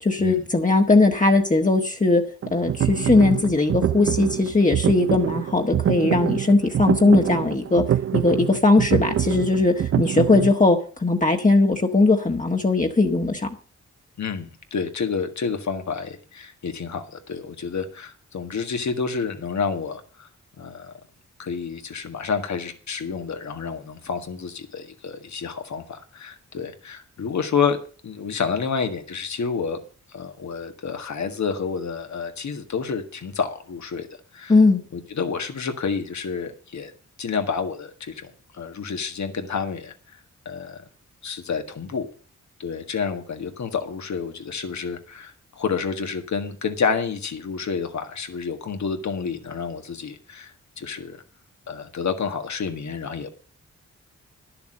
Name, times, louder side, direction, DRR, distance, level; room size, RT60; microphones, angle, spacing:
voice 1, 0.0-2.2 2.5-7.8 8.1-13.5 34.5-34.8, left 3 dB, 25° left, 2 dB, 1.5 m, -19 dB
sound 1, 2.4-10.5, right 10 dB, 50° right, 0.4 m, -25 dB
voice 2, 14.2-20.3 20.6-20.9 21.4-27.8 28.0-29.8 30.1-34.1 34.3-34.5 34.9-36.9 37.2-40.2 40.5-40.8 41.2-42.1 42.6-51.2 51.7-53.3, left 5 dB, 70° left, 7 dB, 1.7 m, -29 dB
11.0 x 7.0 x 7.6 m, 0.40 s
cardioid pair, 60°, 29 cm